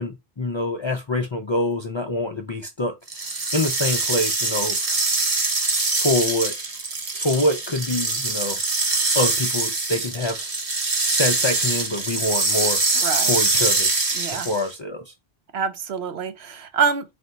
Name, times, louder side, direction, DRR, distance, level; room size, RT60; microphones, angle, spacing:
voice 1, 0.0-2.9 3.5-5.1 6.0-6.5 7.2-8.6 9.1-10.5 11.1-13.9 14.4-15.1, left 1 dB, 45° left, 0.4 m, -25 dB
sound 1, 3.1-14.7, right 3 dB, 40° right, 0.8 m, -23 dB
voice 2, 13.0-13.4 14.2-14.5 15.5-17.0, right 6 dB, 85° right, 0.9 m, -25 dB
4.2 x 2.2 x 3.9 m
omnidirectional pair, 1.1 m